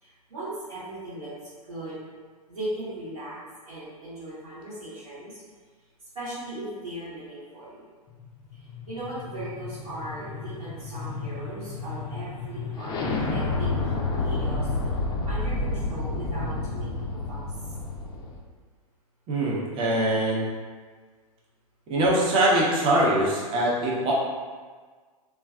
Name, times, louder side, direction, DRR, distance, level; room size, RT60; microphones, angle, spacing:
voice 1, 0.0-1.3 1.7-2.0 2.5-3.4 3.7-5.4 6.1-7.8 8.5-14.7 15.3-17.4, right 1 dB, 75° right, -10 dB, 1.1 m, -38 dB
sound 1, 8.2-18.4, left 3 dB, 25° left, 0.4 m, -30 dB
voice 2, 19.3-20.5 21.9-24.1, right 1 dB, 30° right, -5 dB, 0.6 m, -23 dB
3.1 x 2.3 x 2.3 m, 1.5 s
figure-of-eight pair, 100°, 19 cm